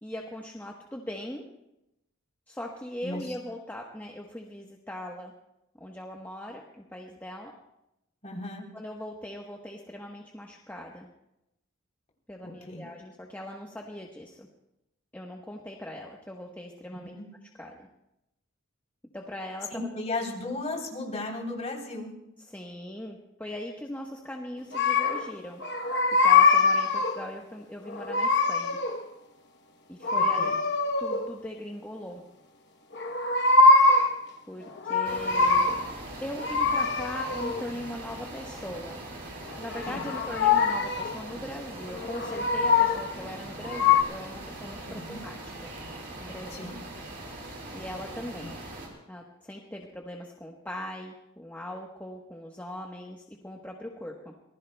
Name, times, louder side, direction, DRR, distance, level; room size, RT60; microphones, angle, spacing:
voice 1, 0.0-1.4 2.5-5.3 5.8-7.5 8.7-11.1 12.3-14.5 15.1-17.1 17.6-17.9 19.1-19.8 22.5-25.6 26.2-28.8 29.9-30.5 31.0-32.2 34.5-35.7 36.2-39.0 39.6-45.5 46.2-46.7 47.7-48.6 49.1-54.3, left 1 dB, 10° left, -1 dB, 1.1 m, -40 dB
voice 2, 3.0-3.3 8.2-8.7 12.4-12.8 16.9-17.3 19.7-22.1 30.1-30.6 39.9-40.1 44.9-45.2 46.5-46.8 48.4-48.5, left 2 dB, 30° left, -1 dB, 3.4 m, -36 dB
sound 1, 24.7-25.3 25.6-27.3 27.9-29.0 30.0-31.4 32.9-34.2 34.7-35.9 36.4-37.7 39.5-41.2 42.0-43.1 43.6-44.0, left 4 dB, 55° left, 1.0 m, -23 dB
sound 2, 35.0-48.9, right 1 dB, 50° right, 4.8 m, -41 dB
25.5 x 19.5 x 2.3 m, 0.88 s
head